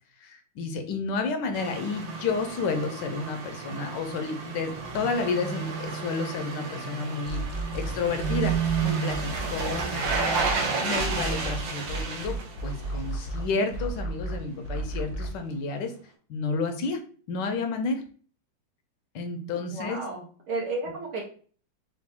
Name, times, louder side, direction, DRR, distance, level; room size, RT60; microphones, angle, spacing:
voice 1, 0.2-7.4 7.7-8.6 8.8-10.4 10.8-12.4 12.6-15.9 16.3-17.0 17.3-18.0 19.1-20.0, left 4 dB, 75° left, 6 dB, 1.2 m, -31 dB
sound 1, 1.5-13.4 13.7-13.8, right 5 dB, 85° right, 1.5 m, -31 dB
sound 2, 7.3-10.5 10.9-15.4, right 1 dB, 50° left, 0.8 m, -33 dB
voice 2, 19.6-21.2, right 3 dB, 65° right, -2 dB, 1.6 m, -33 dB
4.2 x 2.6 x 3.5 m, 0.43 s
omnidirectional pair, 2.0 m